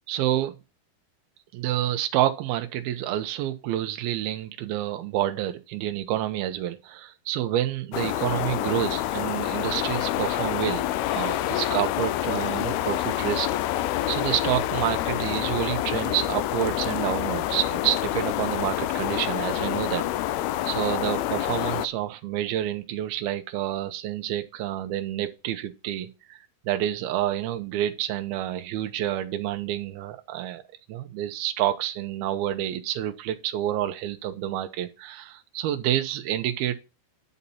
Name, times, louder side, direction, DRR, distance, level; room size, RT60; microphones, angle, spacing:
voice 1, 0.1-0.6 1.5-10.8 11.1-13.5 13.8-20.0 20.7-30.6 30.9-36.7, right 12 dB, 90° right, 2.8 m, -28 dB
sound 1, 7.9-21.9, left 14 dB, 90° left, 2.6 m, -27 dB
11.0 x 4.1 x 7.1 m
omnidirectional pair, 4.3 m